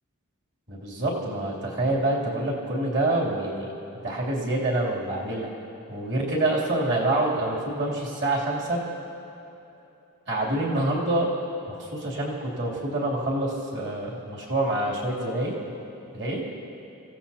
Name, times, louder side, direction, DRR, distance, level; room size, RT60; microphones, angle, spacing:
voice 1, 0.7-3.6 3.9-5.5 5.9-8.8 10.3-11.3 11.7-15.6 16.1-16.4, right 1 dB, 55° right, -4 dB, 3.0 m, -26 dB
26.5 x 16.0 x 2.9 m, 3.0 s
head